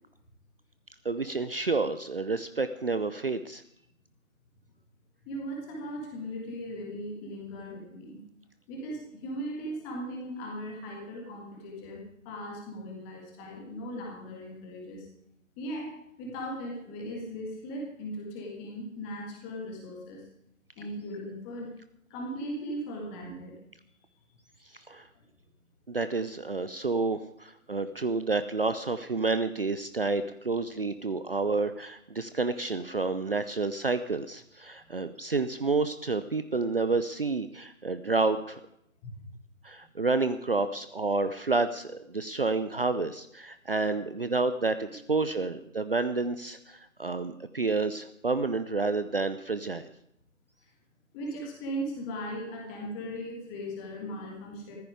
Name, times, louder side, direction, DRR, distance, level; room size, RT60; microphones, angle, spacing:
voice 1, 1.0-3.6 24.7-25.0 25.9-38.6 39.6-49.9, right 3 dB, 45° right, 11 dB, 0.7 m, -29 dB
voice 2, 5.3-8.2 8.7-15.1 15.6-20.2 20.8-21.7 22.1-23.6 25.2-25.3 39.0-39.2 44.9-45.0 51.1-54.7, equal, 10° left, -1 dB, 1.7 m, -38 dB
14.5 x 14.0 x 5.0 m, 0.76 s
figure-of-eight pair, 155°, 42 cm